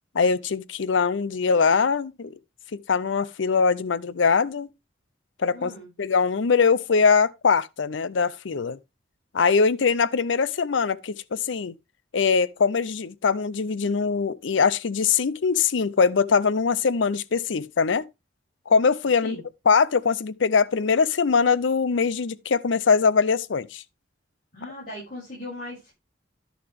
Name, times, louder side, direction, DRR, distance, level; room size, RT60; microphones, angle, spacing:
voice 1, 0.1-2.3 2.7-4.7 5.4-5.7 6.0-8.8 9.3-11.8 12.1-18.0 18.7-19.4 19.7-23.8, left 5 dB, 75° left, 0.5 m, -22 dB
voice 2, 5.5-5.9 19.2-19.4 24.5-25.9, left 1 dB, 45° left, 7.3 m, -38 dB
11.0 x 6.8 x 3.4 m
head